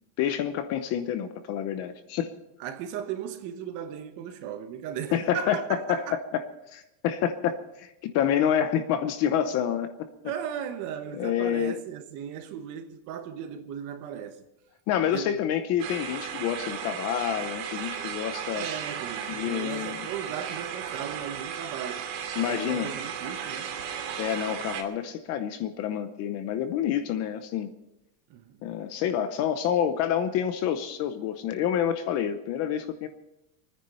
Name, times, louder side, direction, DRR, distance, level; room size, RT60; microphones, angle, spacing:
voice 1, 0.2-2.3 5.1-5.6 5.9-6.0 6.3-6.4 6.7-9.9 11.2-11.7 14.9-18.7 19.3-20.1 22.4-22.9 24.2-27.7 28.6-33.1, left 9 dB, 30° left, 0.8 m, -28 dB
voice 2, 2.6-6.2 10.2-14.4 15.1-15.4 18.5-22.1 22.4-23.8 28.3-28.6, right 9 dB, 35° right, 1.2 m, -37 dB
sound 1, 15.8-24.8, right 8 dB, 80° right, 3.0 m, -35 dB
24.0 x 10.0 x 5.5 m
supercardioid pair, 165°, 49 cm